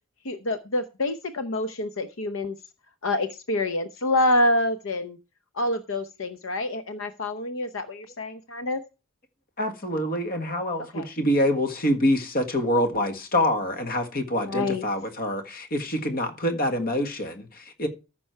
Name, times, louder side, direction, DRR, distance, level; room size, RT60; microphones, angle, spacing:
voice 1, 0.2-2.6 3.0-5.2 5.6-8.8 10.9-11.1 14.5-14.9, left 1 dB, 75° left, 0.8 m, -27 dB
voice 2, 9.6-17.9, left 1 dB, 45° left, 1.6 m, -26 dB
14.5 x 6.1 x 4.5 m
head